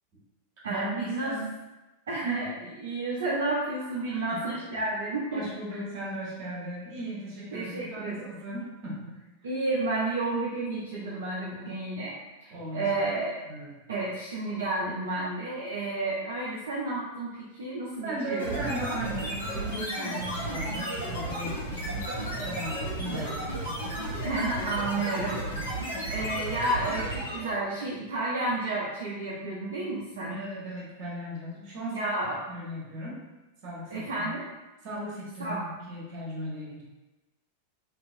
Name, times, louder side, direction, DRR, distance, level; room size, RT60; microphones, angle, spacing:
voice 1, 0.6-1.4 2.1-5.4 5.7-5.8 7.5-8.3 9.4-12.1 12.4-13.4 13.9-18.7 23.0-23.2 24.2-25.6 26.1-30.4 31.9-32.4 33.9-34.4 35.4-35.7, right 2 dB, 65° right, -6 dB, 0.5 m, -31 dB
voice 2, 4.0-4.5 5.3-9.2 12.5-12.9 13.5-13.7 18.0-22.0 22.4-23.5 24.9-25.7 30.3-32.1 32.5-33.2 33.6-34.3 34.8-36.8, right 1 dB, 45° right, -5 dB, 1.2 m, -37 dB
sound 1, 18.4-27.6, right 1 dB, 75° left, 1.1 m, -33 dB
3.0 x 2.9 x 2.5 m, 1.1 s
figure-of-eight pair, 90°, 0 cm